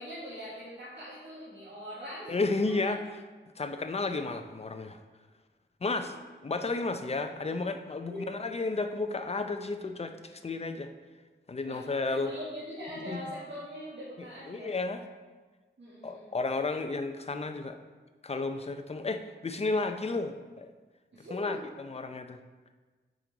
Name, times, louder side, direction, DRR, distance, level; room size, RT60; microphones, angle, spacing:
voice 1, 0.0-2.4 2.6-2.9 6.0-6.1 8.1-8.2 11.6-14.8 15.8-16.3 21.1-21.7, equal, 65° right, -9 dB, 1.7 m, -42 dB
voice 2, 2.3-3.0 3.6-5.0 5.8-6.2 6.4-10.9 11.5-12.3 13.0-13.2 14.2-15.0 16.0-17.8 18.2-20.7 21.2-22.4, left 3 dB, 30° left, 7 dB, 0.5 m, -32 dB
7.6 x 5.2 x 3.9 m, 1.3 s
wide cardioid pair, 105°, 20 cm